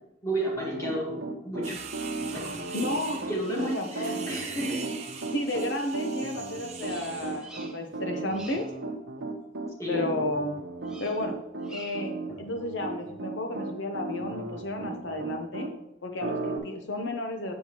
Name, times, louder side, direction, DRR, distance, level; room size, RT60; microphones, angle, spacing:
voice 1, 0.2-1.8 2.3-2.8 3.3-4.8 9.8-10.1, right 1 dB, 15° left, -3 dB, 1.8 m, -32 dB
Piano, 0.5-15.7 16.2-16.6, right 3 dB, 75° right, 0.9 m, -35 dB
sound 1, 1.6-7.5, right 6 dB, 35° right, 0.7 m, -42 dB
voice 2, 2.7-4.2 5.3-8.7 9.9-10.6 11.0-11.3 11.7-12.1 12.4-15.7 16.0-17.5, left 1 dB, 75° left, 5 dB, 0.8 m, -32 dB
Bird vocalization bird call bird song, 6.8-8.0 8.3-8.8 10.8-11.3 11.6-12.2, right 2 dB, 5° right, 0.8 m, -48 dB
7.6 x 7.3 x 3.0 m, 0.80 s
head